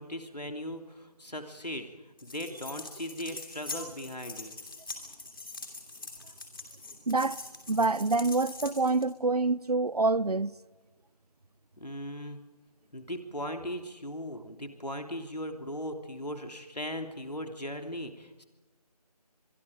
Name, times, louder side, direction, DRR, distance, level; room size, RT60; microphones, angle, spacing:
voice 1, 0.0-1.9 2.2-4.5 11.8-12.4 12.9-18.4, equal, 90° left, 3.1 m, -38 dB
sound 1, 2.2-9.1, left 3 dB, 35° left, 2.9 m, -43 dB
voice 2, 7.1-10.5, right 3 dB, 70° right, 0.7 m, -27 dB
24.5 x 23.5 x 5.2 m
figure-of-eight pair, 165°, 20 cm